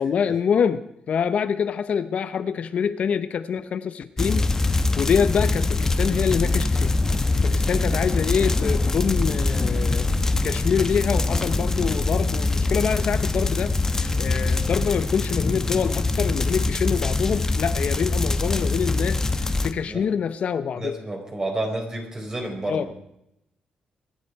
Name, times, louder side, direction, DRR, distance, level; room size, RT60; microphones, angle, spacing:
voice 1, 0.0-6.9 7.4-10.1 10.4-20.9 22.6-22.9, left 7 dB, 55° left, 11 dB, 0.7 m, -25 dB
sound 1, 4.2-19.7, left 3 dB, 20° left, 1.0 m, -23 dB
voice 2, 20.7-22.9, right 2 dB, 25° right, 2 dB, 4.6 m, -30 dB
24.0 x 11.0 x 4.6 m, 0.81 s
cardioid pair, 125°, 3 cm